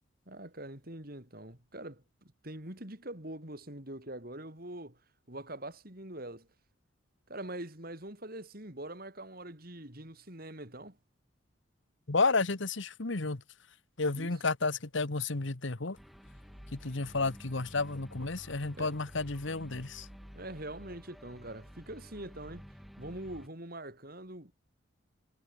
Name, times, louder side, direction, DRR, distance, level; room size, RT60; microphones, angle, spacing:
voice 1, 0.3-2.0 2.4-5.0 5.3-6.5 7.3-11.0 14.1-14.3 18.7-18.9 20.3-22.7 23.0-24.5, right 1 dB, 45° right, 4.4 m, -43 dB
voice 2, 12.1-13.4 14.0-16.0 16.7-20.1, left 3 dB, 65° left, 1.3 m, -31 dB
sound 1, 16.0-23.5, equal, ahead, 7.8 m, -51 dB
head